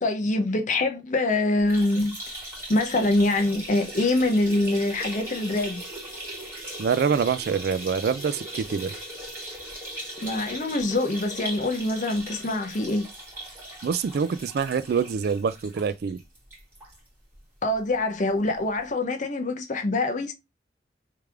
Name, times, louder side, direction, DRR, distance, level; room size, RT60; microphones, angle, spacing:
voice 1, 0.0-2.1 2.7-5.8 10.2-13.0 17.6-20.3, left 2 dB, 45° left, 0.7 m, -24 dB
sound 1, 1.6-17.0 17.3-17.4 17.8-17.9 18.9-19.0, right 1 dB, 10° right, 2.3 m, -39 dB
voice 2, 6.8-8.9 13.8-16.2, right 6 dB, 60° right, 0.3 m, -25 dB
3.4 x 3.3 x 3.3 m
head